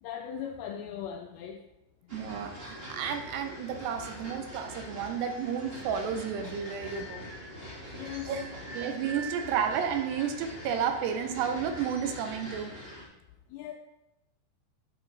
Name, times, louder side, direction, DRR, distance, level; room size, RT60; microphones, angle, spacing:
voice 1, 0.0-1.6 7.9-8.6 13.5-13.7, left 9 dB, 85° left, 4 dB, 2.2 m, -39 dB
sound 1, 2.1-13.1, equal, 45° right, 0.7 m, -43 dB
voice 2, 2.1-7.3 8.3-8.5 8.7-12.7, right 7 dB, 80° right, 7 dB, 2.7 m, -32 dB
9.8 x 5.9 x 3.9 m, 0.88 s
omnidirectional pair, 4.9 m